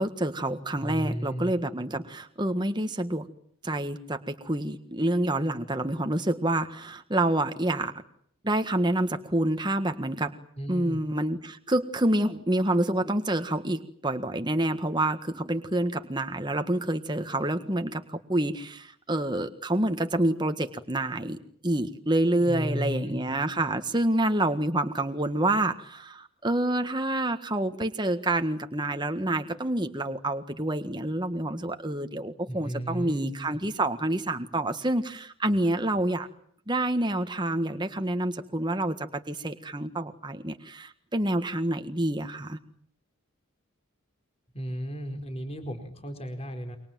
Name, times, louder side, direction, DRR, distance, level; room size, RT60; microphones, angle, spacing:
voice 1, 0.0-3.2 3.6-7.9 8.4-10.3 10.7-21.4 21.6-36.3 36.7-42.6, right 1 dB, 20° right, 7 dB, 1.6 m, -28 dB
voice 2, 0.7-1.5 10.6-11.0 22.4-23.3 32.5-33.4 44.5-46.8, equal, 30° left, 6 dB, 4.8 m, -34 dB
29.0 x 24.5 x 7.6 m, 0.64 s
head